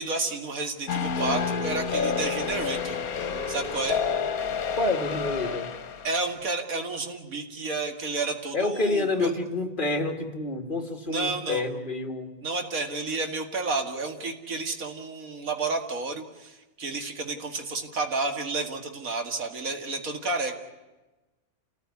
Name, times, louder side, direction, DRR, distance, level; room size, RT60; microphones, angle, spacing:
voice 1, 0.0-3.0 3.5-4.0 6.0-9.3 11.1-11.6 12.4-20.5, right 3 dB, 70° right, 4 dB, 2.5 m, -31 dB
sound 1, 0.9-6.2, left 6 dB, 75° left, 1.5 m, -29 dB
voice 2, 4.7-5.7 8.5-12.3, left 2 dB, 35° left, 4 dB, 2.0 m, -28 dB
29.5 x 14.5 x 9.6 m, 1.1 s
omnidirectional pair, 1.5 m